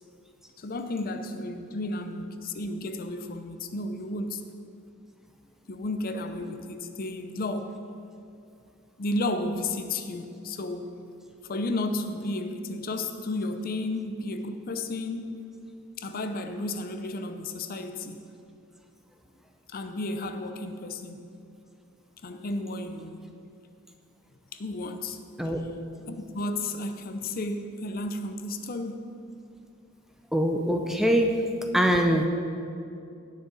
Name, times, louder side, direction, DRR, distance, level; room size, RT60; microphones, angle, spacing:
voice 1, 0.6-4.4 5.7-7.8 9.0-11.0 11.5-15.5 16.0-18.2 19.7-21.3 22.2-23.2 24.5-25.2 26.1-29.2, left 2 dB, 40° left, 8 dB, 0.5 m, -33 dB
voice 2, 30.3-31.4 31.7-32.3, equal, ahead, 4 dB, 0.5 m, -23 dB
17.5 x 6.3 x 4.0 m, 2.5 s
head